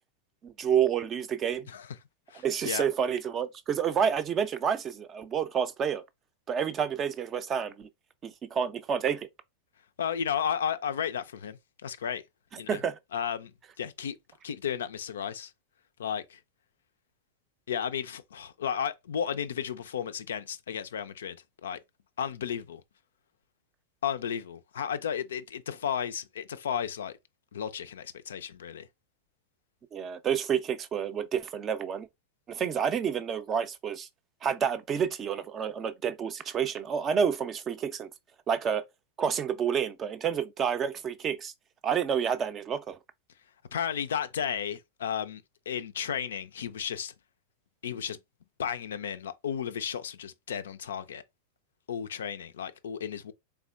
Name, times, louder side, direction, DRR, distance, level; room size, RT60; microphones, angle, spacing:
voice 1, 0.4-1.7 2.4-6.0 6.5-7.9 8.2-9.3 12.7-13.0 29.9-32.1 32.5-34.1 34.4-38.1 38.5-38.8 39.2-41.5 41.8-43.0, right 7 dB, 25° right, 0.4 m, -29 dB
voice 2, 2.3-2.9 10.0-12.2 12.6-12.8 13.1-14.2 14.4-15.5 16.0-16.4 17.7-21.8 22.2-22.8 24.0-27.2 27.5-28.9 43.7-47.1 47.8-48.2 48.6-51.2 51.9-53.3, left 8 dB, 65° left, 0.3 m, -33 dB
3.5 x 3.4 x 2.4 m
figure-of-eight pair, 90°, 0 cm